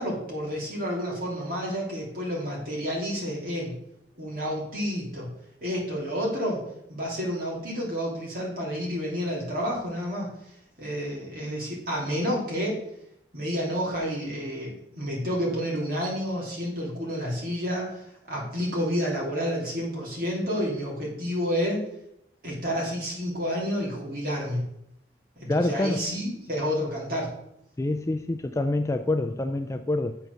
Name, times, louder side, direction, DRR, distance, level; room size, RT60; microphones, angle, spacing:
voice 1, 0.0-3.8 4.2-5.3 5.6-6.6 6.9-10.3 10.8-12.8 13.3-21.8 22.4-24.6 25.4-27.3, equal, 55° right, -4 dB, 3.1 m, -30 dB
voice 2, 25.5-26.1 27.8-30.2, left 2 dB, 15° left, 7 dB, 0.3 m, -26 dB
7.6 x 4.5 x 6.7 m, 0.77 s
head